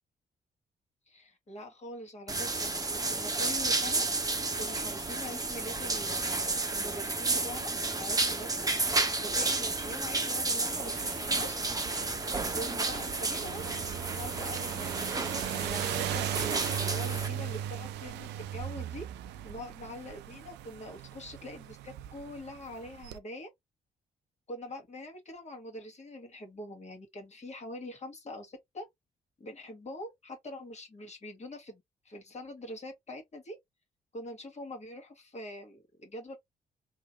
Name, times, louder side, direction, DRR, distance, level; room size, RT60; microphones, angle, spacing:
voice 1, 1.1-4.1 4.6-6.4 6.7-8.7 9.2-11.6 12.5-15.1 15.5-19.1 19.4-23.5 24.5-28.9 29.4-33.6 34.1-36.4, left 1 dB, 35° left, 1.7 m, -44 dB
sound 1, 2.3-17.3, right 3 dB, 20° right, 0.9 m, -31 dB
sound 2, 10.6-23.2, right 11 dB, 60° right, 0.4 m, -38 dB
3.2 x 2.9 x 2.6 m
figure-of-eight pair, 40°, 20 cm